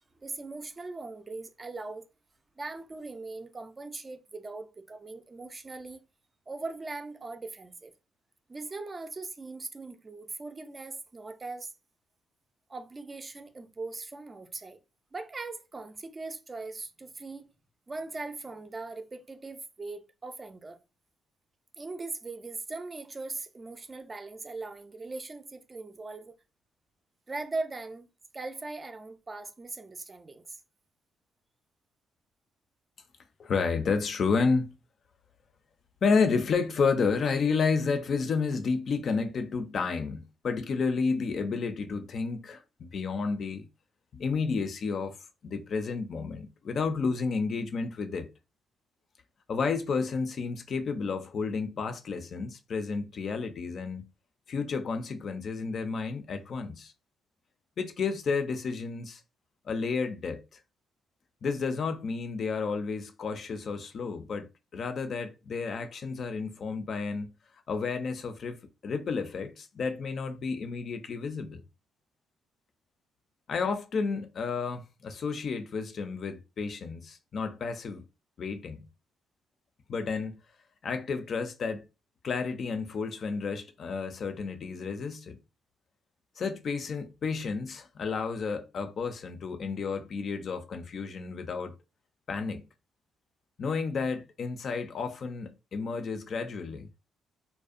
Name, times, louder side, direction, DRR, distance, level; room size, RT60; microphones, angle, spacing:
voice 1, 0.2-2.0 2.6-6.0 6.5-7.9 8.5-11.7 12.7-14.8 15.1-17.5 17.9-20.8 21.8-26.3 27.3-28.1 28.3-30.6, right 3 dB, 30° right, 0.3 m, -40 dB
voice 2, 33.4-34.7 36.0-43.6 44.1-45.2 45.4-48.3 49.5-54.1 54.5-56.9 57.8-59.2 59.7-60.4 61.4-67.3 67.7-71.6 73.5-78.0 78.4-78.8 79.9-80.4 80.8-81.8 82.2-85.4 86.4-91.8 92.3-92.6 93.6-96.9, left 5 dB, 55° left, 0.4 m, -31 dB
2.5 x 2.0 x 2.4 m
cardioid pair, 90°, 0 cm